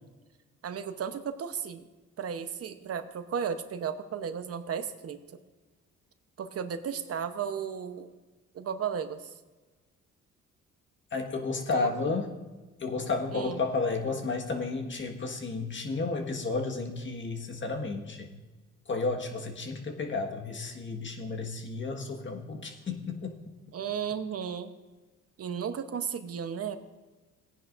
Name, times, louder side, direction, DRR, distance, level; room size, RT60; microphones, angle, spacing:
voice 1, 0.6-1.9 2.2-5.2 6.4-8.1 8.5-9.3 11.7-11.9 13.3-13.6 23.7-24.8 25.4-26.8, right 7 dB, 50° right, 9 dB, 0.9 m, -34 dB
voice 2, 11.1-12.3 12.8-18.3 18.9-23.3, left 3 dB, 40° left, 3 dB, 1.6 m, -32 dB
18.0 x 10.0 x 2.6 m, 1.2 s
cardioid pair, 90°, 30 cm